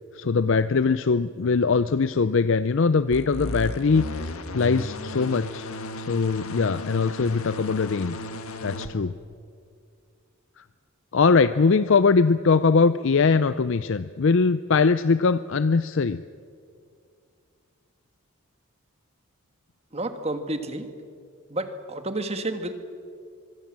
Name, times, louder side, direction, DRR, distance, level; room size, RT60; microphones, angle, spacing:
voice 1, 0.1-5.7 6.0-8.2 8.6-9.1 10.6-10.7 11.1-16.2, left 4 dB, 60° left, 14 dB, 0.5 m, -21 dB
sound 1, 3.1-8.9, left 1 dB, 75° left, 1.6 m, -34 dB
voice 2, 19.9-20.9 21.5-22.7, right 2 dB, 30° right, 8 dB, 1.6 m, -30 dB
24.5 x 22.0 x 7.5 m, 2.3 s
head